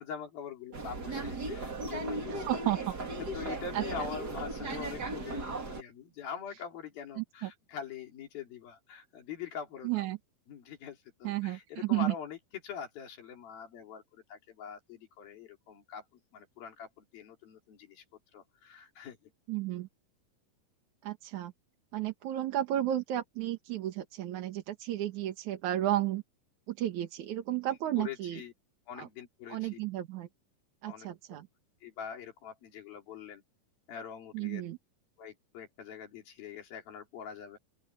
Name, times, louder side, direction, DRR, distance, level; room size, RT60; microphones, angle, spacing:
voice 1, 0.0-2.4 3.3-10.1 10.5-12.4 12.6-16.0 16.3-18.0 18.3-19.2 28.0-28.5 28.9-29.8 30.8-31.1 31.8-33.4 33.9-34.6 35.2-37.6, left 8 dB, 90° left, 5.1 m, -44 dB
sound 1, 0.7-5.8, right 2 dB, 30° right, 3.3 m, -37 dB
voice 2, 2.5-2.9 3.7-3.8 7.2-7.5 9.8-10.2 11.2-12.1 19.5-19.9 21.0-21.5 21.9-26.2 26.7-28.4 29.0-29.1 29.5-30.3 30.8-31.5 34.3-34.8, right 13 dB, 65° right, 2.6 m, -33 dB
open air
omnidirectional pair, 4.1 m